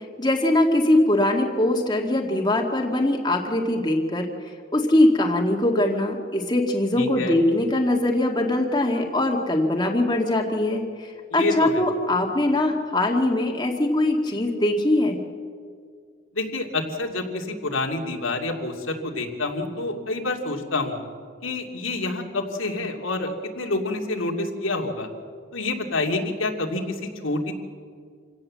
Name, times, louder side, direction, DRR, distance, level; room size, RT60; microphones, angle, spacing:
voice 1, 0.2-4.3 4.7-15.2, left 1 dB, 20° left, 1 dB, 2.0 m, -22 dB
voice 2, 6.9-7.4 11.3-11.8 16.3-21.0 21.4-25.1 25.5-27.5, left 2 dB, 85° left, 2 dB, 2.6 m, -28 dB
27.0 x 17.0 x 7.6 m, 2.1 s
head